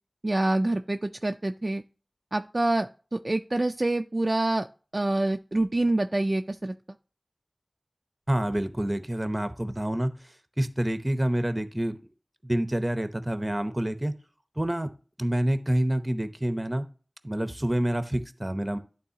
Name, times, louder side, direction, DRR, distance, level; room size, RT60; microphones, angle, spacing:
voice 1, 0.2-1.8 2.3-4.7 4.9-6.7, right 2 dB, 55° right, 6 dB, 0.3 m, -26 dB
voice 2, 8.3-10.1 10.6-11.9 12.4-14.1 14.6-14.9 15.2-16.9 17.2-18.8, right 1 dB, 25° right, 10 dB, 0.8 m, -27 dB
11.5 x 3.8 x 2.8 m, 0.36 s
wide cardioid pair, 45°, 0 cm